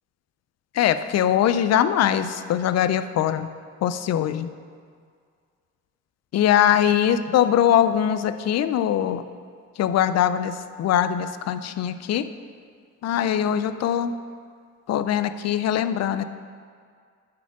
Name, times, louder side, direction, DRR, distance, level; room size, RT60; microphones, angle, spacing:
voice 1, 0.7-3.5 3.8-4.5 6.3-9.2 9.8-12.2 13.0-14.2 14.9-16.2, left 10 dB, 60° left, 11 dB, 0.5 m, -22 dB
7.2 x 4.9 x 5.9 m, 2.1 s
cardioid pair, 90°, 30 cm